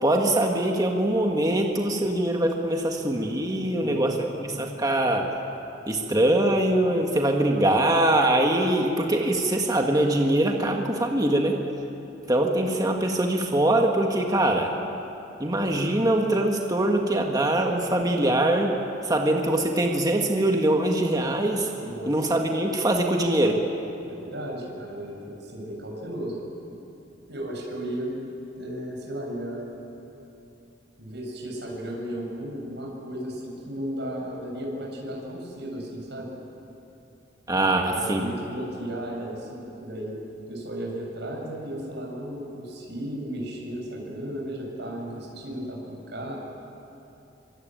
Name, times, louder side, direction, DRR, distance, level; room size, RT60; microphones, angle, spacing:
voice 1, 0.0-5.3 5.9-11.6 12.3-14.8 15.4-18.8 19.0-21.7 22.1-23.6 37.5-38.2, right 1 dB, 20° right, 1 dB, 1.8 m, -23 dB
voice 2, 3.6-4.4 21.8-22.1 24.0-26.4 27.3-28.2 28.6-29.7 31.0-36.3 37.9-40.2 40.5-46.4, right 1 dB, 60° right, -1 dB, 7.4 m, -35 dB
25.0 x 24.0 x 9.2 m, 2.9 s
head